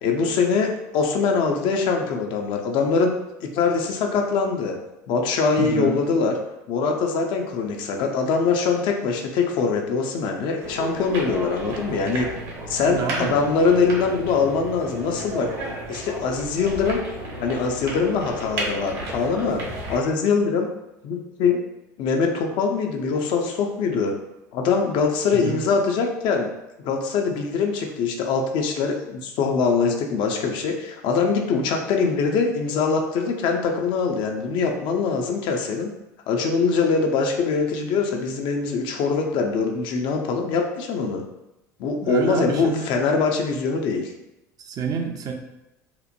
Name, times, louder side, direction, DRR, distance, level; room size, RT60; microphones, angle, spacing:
voice 1, 0.0-4.8 5.1-6.3 6.7-12.3 12.7-15.5 15.9-17.0 17.4-19.6 19.9-20.7 21.0-21.6 22.0-24.1 24.5-26.5 26.8-35.9 36.3-41.2 41.8-44.1, left 5 dB, 55° left, 2 dB, 0.5 m, -23 dB
voice 2, 5.6-5.9 12.8-13.4 25.3-25.6 42.0-42.9 44.6-45.3, right 6 dB, 40° right, 3 dB, 0.4 m, -28 dB
sound 1, 10.6-20.0, right 2 dB, 60° right, 0.9 m, -33 dB
2.9 x 2.0 x 2.5 m, 0.92 s
hypercardioid pair, 75°, 10 cm